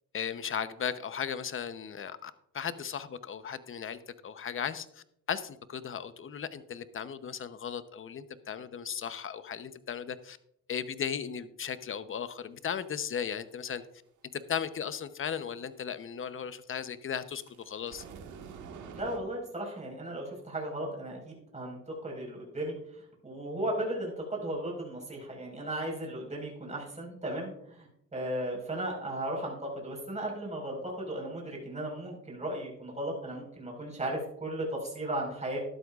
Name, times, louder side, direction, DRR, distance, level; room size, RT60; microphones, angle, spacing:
voice 1, 0.1-10.4 10.7-13.8 14.3-18.0, left 7 dB, 45° left, 12 dB, 0.8 m, -36 dB
sound 1, 17.3-19.2, right 6 dB, 80° right, 1.7 m, -46 dB
voice 2, 18.9-35.6, right 1 dB, 25° right, -1 dB, 4.8 m, -36 dB
13.0 x 12.0 x 2.4 m, 0.74 s
cardioid pair, 90°, 30 cm